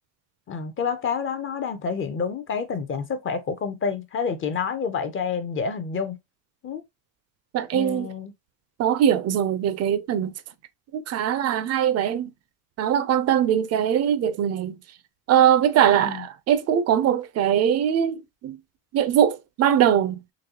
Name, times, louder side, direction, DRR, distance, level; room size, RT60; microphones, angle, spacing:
voice 1, 0.5-6.2 6.6-6.8 7.7-8.3 15.9-16.2, left 5 dB, 30° left, 0.5 m, -28 dB
voice 2, 7.5-8.1 8.8-10.3 10.9-12.3 12.8-14.8 15.3-18.6 18.9-20.2, right 9 dB, 35° right, 0.4 m, -21 dB
4.0 x 3.1 x 2.8 m
cardioid pair, 150°, 45 cm